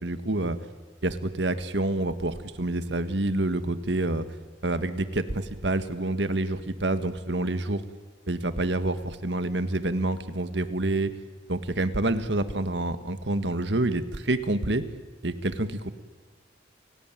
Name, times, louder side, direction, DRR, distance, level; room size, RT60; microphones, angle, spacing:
voice 1, 0.0-0.6 1.0-4.3 4.6-7.8 8.3-11.1 11.5-14.9 15.2-15.9, right 2 dB, 65° right, 10 dB, 1.7 m, -27 dB
30.0 x 17.0 x 9.1 m, 1.5 s
head